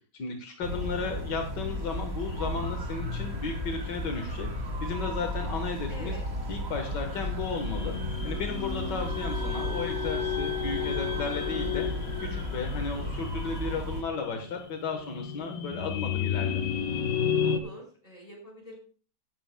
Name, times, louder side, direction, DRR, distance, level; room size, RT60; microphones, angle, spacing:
voice 1, 0.1-4.5 4.8-6.1 6.5-8.0 8.2-11.9 12.2-16.6, left 4 dB, 75° left, 3 dB, 1.9 m, -34 dB
sound 1, 0.6-14.0, left 1 dB, 35° right, 2.2 m, -34 dB
voice 2, 5.9-6.2 12.5-13.0 17.4-18.8, equal, 20° left, 1 dB, 4.7 m, -46 dB
sound 2, 7.5-17.6, left 8 dB, 55° left, 1.4 m, -33 dB
Wind instrument woodwind instrument, 9.1-11.9, right 5 dB, 55° right, 2.4 m, -42 dB
16.0 x 11.0 x 2.2 m, 0.39 s
omnidirectional pair, 1.9 m